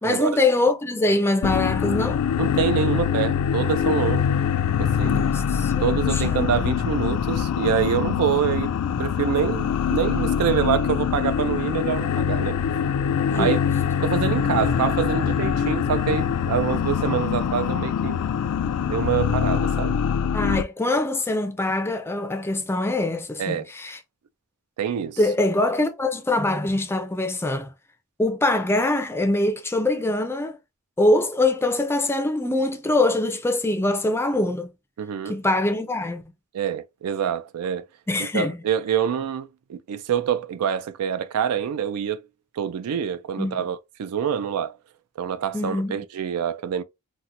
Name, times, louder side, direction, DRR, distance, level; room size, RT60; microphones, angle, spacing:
voice 1, 0.0-2.2 5.0-6.5 13.3-13.6 20.3-24.0 25.2-27.7 28.2-30.6 31.0-34.7 35.3-36.2 38.1-38.6 43.4-43.6 45.5-46.0, left 2 dB, 10° left, 0.4 m, -23 dB
sound 1, 1.4-20.6, left 8 dB, 85° left, 0.3 m, -24 dB
voice 2, 2.4-4.3 4.8-5.3 5.8-8.7 9.0-12.6 13.3-13.6 14.0-18.2 18.9-20.0 23.4-23.7 24.8-25.2 35.0-35.3 36.5-37.9 38.2-42.2 42.6-44.7 45.2-46.8, right 8 dB, 80° right, 0.4 m, -26 dB
4.1 x 2.1 x 2.5 m
head